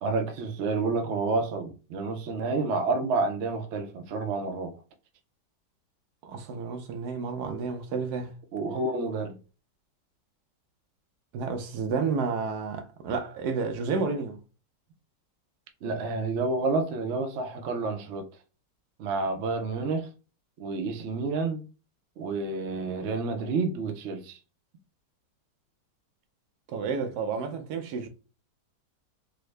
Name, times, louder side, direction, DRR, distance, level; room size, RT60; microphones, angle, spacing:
voice 1, 0.0-4.8 8.5-9.4 15.8-18.3 19.0-20.1 20.6-21.6 22.2-24.4, right 3 dB, 85° right, 0.6 m, -29 dB
voice 2, 6.2-8.3 11.3-14.4 26.7-28.1, right 5 dB, 70° right, 1.1 m, -31 dB
3.7 x 2.0 x 3.2 m
omnidirectional pair, 1.9 m